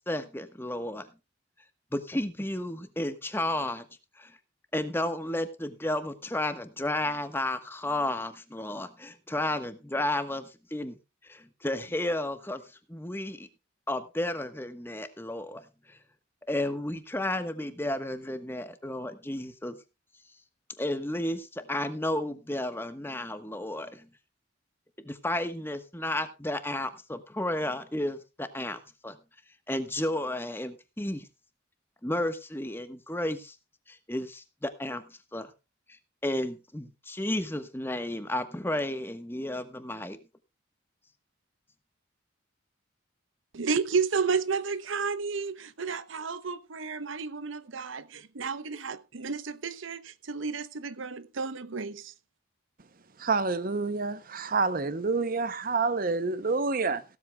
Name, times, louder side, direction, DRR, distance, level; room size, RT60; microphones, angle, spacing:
voice 1, 0.1-1.1 1.9-3.8 4.2-4.3 4.7-10.9 11.2-12.6 12.9-13.5 13.9-16.0 16.5-19.8 20.8-24.1 25.0-29.2 29.7-31.3 32.0-33.5 33.9-35.5 35.9-36.0 36.2-40.2, left 1 dB, 10° left, 1.2 m, -32 dB
voice 2, 43.5-52.1, right 5 dB, 75° right, 0.8 m, -32 dB
voice 3, 53.2-57.0, right 4 dB, 45° right, 0.7 m, -28 dB
16.5 x 13.0 x 2.3 m
head